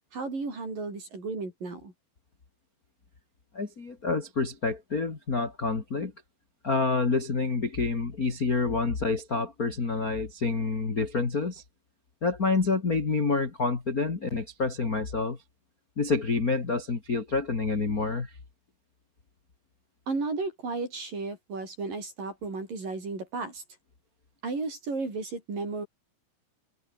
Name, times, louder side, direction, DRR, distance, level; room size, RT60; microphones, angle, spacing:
voice 1, 0.1-1.9 20.1-23.6 24.4-25.9, right 3 dB, 55° right, 9.7 m, -34 dB
voice 2, 3.5-6.1 6.6-11.6 12.2-15.4 16.0-18.3, left 4 dB, 30° left, 1.9 m, -28 dB
omnidirectional pair, 4.8 m